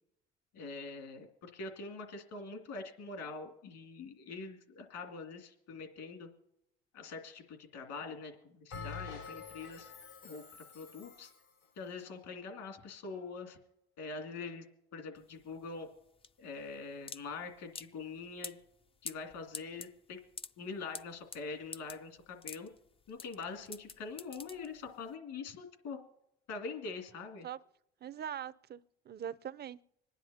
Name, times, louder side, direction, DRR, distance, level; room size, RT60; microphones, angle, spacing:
voice 1, 0.5-6.3 6.9-9.9 10.2-10.4 10.7-11.3 11.8-13.6 14.0-14.7 14.9-15.9 16.4-18.6 19.0-20.2 20.6-22.7 23.1-26.0 26.5-27.5, left 4 dB, 70° left, 2.5 m, -44 dB
Bell, 8.7-11.5, left 5 dB, 85° left, 4.2 m, -47 dB
sound 1, 15.2-25.1, left 4 dB, 20° left, 0.4 m, -48 dB
voice 2, 28.0-29.8, right 9 dB, 35° right, 0.5 m, -42 dB
26.0 x 10.0 x 2.8 m
hypercardioid pair, 55°, 31 cm